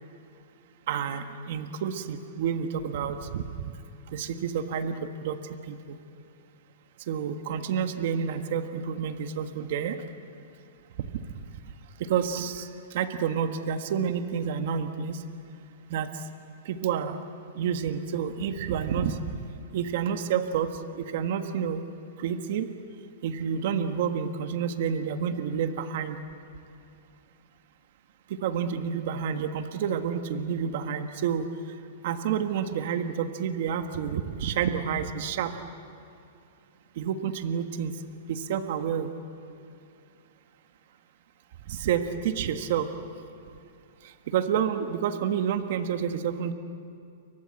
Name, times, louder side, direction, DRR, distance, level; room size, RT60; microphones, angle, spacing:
voice 1, 0.9-3.4 4.1-5.0 5.2-5.4 5.7-6.0 7.1-10.0 12.0-12.7 12.9-15.2 15.9-16.1 16.6-17.2 17.6-19.2 19.7-20.7 20.9-21.8 22.2-22.7 23.2-26.2 28.4-31.5 32.0-35.5 37.0-37.9 38.3-39.1 41.7-42.9 44.3-46.5, right 8 dB, 55° right, 7 dB, 1.5 m, -29 dB
29.5 x 23.5 x 7.9 m, 2.5 s
hypercardioid pair, 155°, 0 cm